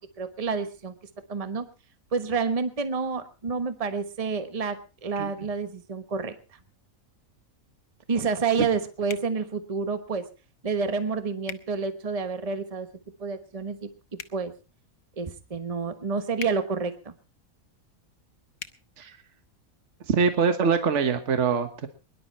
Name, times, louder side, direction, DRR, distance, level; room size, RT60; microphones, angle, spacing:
voice 1, 0.2-0.9 1.3-1.6 2.1-6.3 8.1-10.2 10.6-12.9 13.2-13.9 14.3-14.5 15.2-17.1, right 5 dB, 25° right, 9 dB, 1.2 m, -29 dB
sound 1, 9.1-9.3 11.4-11.6 14.1-14.4 16.4-16.6 18.6-18.8, left 8 dB, 80° left, 1.5 m, -38 dB
voice 2, 20.1-21.9, right 5 dB, 60° right, 8 dB, 1.5 m, -24 dB
22.5 x 11.5 x 4.2 m, 0.33 s
omnidirectional pair, 1.5 m